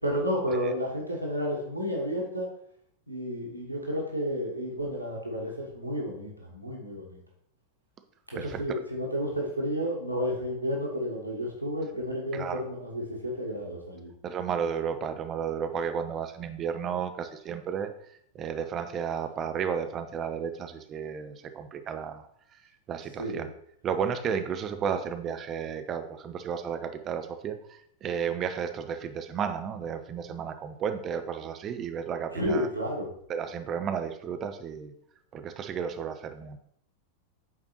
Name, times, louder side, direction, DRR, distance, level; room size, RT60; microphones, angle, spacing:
voice 1, 0.0-2.5 3.1-7.2 8.4-14.1 23.2-23.5 32.3-33.1, equal, 90° left, -2 dB, 1.3 m, -31 dB
voice 2, 8.4-8.8 12.3-12.6 14.2-17.9 18.3-22.2 22.9-23.5 23.8-32.7 33.3-34.9 35.3-36.6, right 7 dB, 30° right, 8 dB, 0.6 m, -33 dB
8.6 x 4.2 x 2.9 m, 0.70 s
figure-of-eight pair, 90°, 0 cm